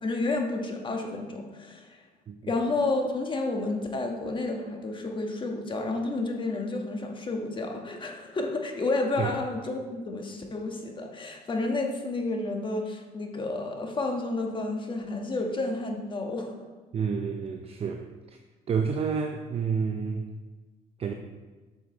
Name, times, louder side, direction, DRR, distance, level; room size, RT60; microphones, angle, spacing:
voice 1, 0.0-2.0 2.4-16.5, left 2 dB, 30° left, 2 dB, 1.3 m, -30 dB
voice 2, 16.9-18.4 18.7-20.3 21.0-21.1, right 6 dB, 35° right, 5 dB, 0.6 m, -29 dB
7.7 x 6.4 x 4.0 m, 1.3 s
cardioid pair, 110°, 17 cm